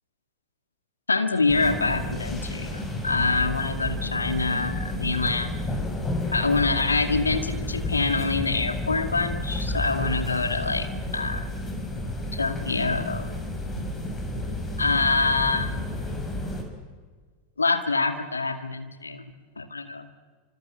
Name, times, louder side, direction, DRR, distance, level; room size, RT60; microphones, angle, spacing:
voice 1, 1.1-5.7 6.3-10.9 11.1-11.6 12.3-13.5 14.8-16.0 17.6-19.3 19.6-20.1, left 3 dB, 80° left, 8 dB, 2.4 m, -26 dB
sound 1, 1.5-16.6, left 1 dB, 15° left, 6.0 m, -31 dB
27.5 x 26.5 x 7.8 m, 1.5 s
figure-of-eight pair, 90°, 0 cm